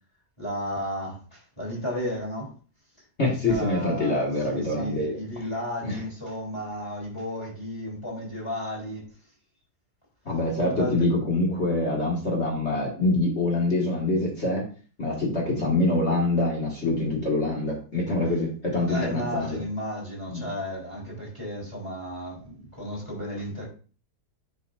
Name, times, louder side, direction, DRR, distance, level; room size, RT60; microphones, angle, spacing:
voice 1, 0.4-2.5 3.5-9.1 10.7-10.9 18.9-23.7, equal, 20° left, -4 dB, 3.2 m, -33 dB
voice 2, 3.2-5.2 5.8-6.0 10.3-14.7 15.0-19.6 20.3-20.4, left 2 dB, 45° left, -3 dB, 2.0 m, -25 dB
9.8 x 4.9 x 2.5 m, 0.37 s
omnidirectional pair, 1.7 m